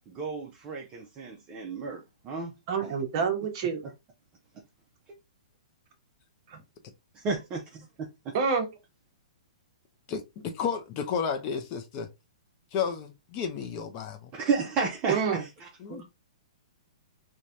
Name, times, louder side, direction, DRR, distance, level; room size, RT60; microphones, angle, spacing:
voice 1, 0.1-2.5 7.1-8.4 14.3-15.7, right 4 dB, 25° right, 0.4 m, -32 dB
voice 2, 2.7-3.8 6.5-6.6 8.3-8.7 15.1-15.4 15.9-16.0, right 6 dB, 40° right, 0.8 m, -27 dB
voice 3, 10.1-12.1 12.7-14.3 15.8-16.0, left 6 dB, 30° left, 0.5 m, -32 dB
3.1 x 2.1 x 2.5 m
hypercardioid pair, 155°, 4 cm